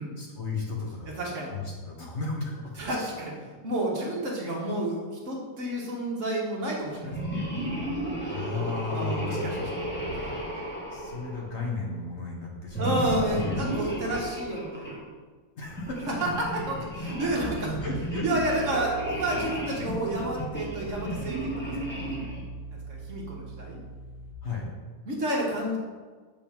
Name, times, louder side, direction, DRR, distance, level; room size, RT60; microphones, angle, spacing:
voice 1, 0.2-1.2 1.5-2.7 8.3-9.7 10.9-12.9 13.3-13.7 15.6-16.1 17.8-18.2 24.4-24.7, left 4 dB, 50° left, -3 dB, 1.3 m, -34 dB
voice 2, 1.2-1.5 2.8-7.6 8.9-9.6 10.1-10.4 12.8-15.0 16.1-17.8 18.2-22.1 22.7-23.8 25.0-25.8, right 1 dB, 55° right, -2 dB, 1.5 m, -30 dB
sound 1, 7.0-11.8 12.7-15.0 15.6-22.5, right 1 dB, 5° left, 1.3 m, -33 dB
sound 2, 17.4-24.3, right 2 dB, 25° right, 0.5 m, -41 dB
7.0 x 5.3 x 3.5 m, 1.5 s
omnidirectional pair, 1.7 m